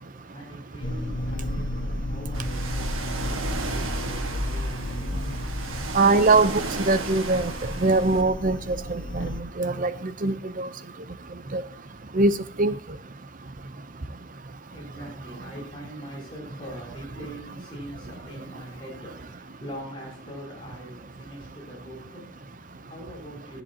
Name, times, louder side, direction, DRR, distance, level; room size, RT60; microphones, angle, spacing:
voice 1, 0.0-5.1 14.7-23.6, equal, 25° left, 5.5 m, -43 dB
sound 1, 0.8-9.4, left 1 dB, 65° left, 1.4 m, -32 dB
Ocean, 2.3-8.2, right 3 dB, 80° right, 1.6 m, -35 dB
voice 2, 5.9-7.5 7.8-10.7 11.5-11.6 12.1-12.3 12.6-12.7, right 3 dB, 40° right, 0.7 m, -22 dB
18.0 x 8.1 x 2.9 m
head